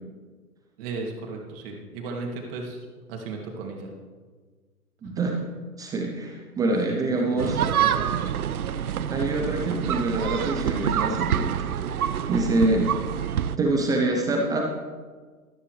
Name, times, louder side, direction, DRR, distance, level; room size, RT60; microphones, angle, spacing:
voice 1, 0.8-3.9 5.0-5.1 6.9-8.0, right 3 dB, 40° right, 1 dB, 2.5 m, -35 dB
voice 2, 5.0-5.3 5.8-7.6 9.1-11.6 12.3-12.9 13.6-14.6, right 2 dB, 10° right, 1 dB, 0.6 m, -25 dB
sound 1, 7.4-13.6, right 9 dB, 70° right, 0.7 m, -26 dB
13.5 x 13.0 x 3.3 m, 1.5 s
figure-of-eight pair, 120°, 46 cm